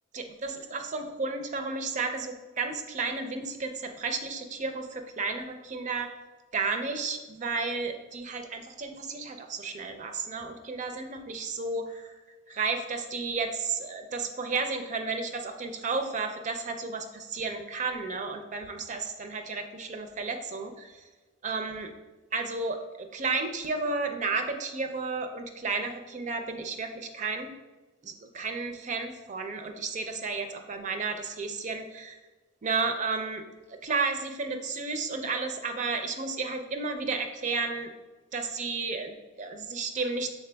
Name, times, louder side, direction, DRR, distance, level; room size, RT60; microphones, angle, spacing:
voice 1, 0.1-6.1 6.5-12.1 12.5-21.1 21.4-21.9 22.3-27.5 28.0-32.2 32.6-33.4 33.8-37.9 38.3-40.3, right 4 dB, 35° right, 6 dB, 0.4 m, -32 dB
5.8 x 3.9 x 2.2 m, 1.2 s
head